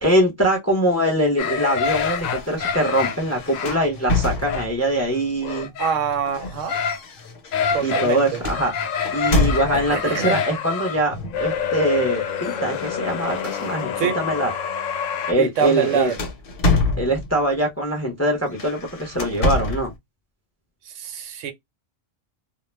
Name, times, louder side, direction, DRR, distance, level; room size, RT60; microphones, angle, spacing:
voice 1, 0.0-5.7 7.8-8.7 9.1-14.5 15.3-16.1 17.0-19.9, right 1 dB, 15° left, 0.5 m, -22 dB
sound 1, 1.4-7.0 7.3-8.2 8.4-15.3, left 7 dB, 80° left, 1.0 m, -27 dB
sound 2, 1.8-4.9 5.9-10.1 11.1-11.5 11.8-14.1 14.6-14.8 15.1-17.5 18.4-19.9, left 2 dB, 55° left, 0.8 m, -28 dB
voice 2, 5.8-6.7 7.7-8.4 9.7-10.4 14.0-14.2 15.4-16.2 21.0-21.5, right 7 dB, 75° right, 0.9 m, -25 dB
2.3 x 2.0 x 3.1 m
omnidirectional pair, 1.3 m